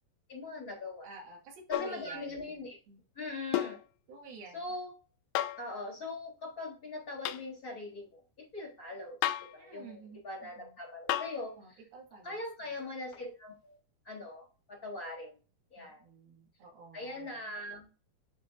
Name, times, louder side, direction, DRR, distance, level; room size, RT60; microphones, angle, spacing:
voice 1, 0.3-1.1 1.7-2.8 3.2-3.8 4.5-4.9 5.6-10.0 10.2-11.5 12.2-13.8 14.1-15.4 15.7-16.0 16.9-17.9, left 2 dB, 25° left, -3 dB, 4.1 m, -41 dB
voice 2, 1.0-2.6 2.9-3.0 4.1-4.7 9.6-10.8 11.6-12.8 15.8-17.4, right 4 dB, 85° right, 0 dB, 4.2 m, -51 dB
sound 1, 1.7-2.0 3.5-3.8 5.4-5.7 7.3-7.5 9.2-9.6 11.1-11.4 13.1-13.2, left 14 dB, 80° left, 2.4 m, -32 dB
9.6 x 7.6 x 2.7 m, 0.36 s
omnidirectional pair, 4.2 m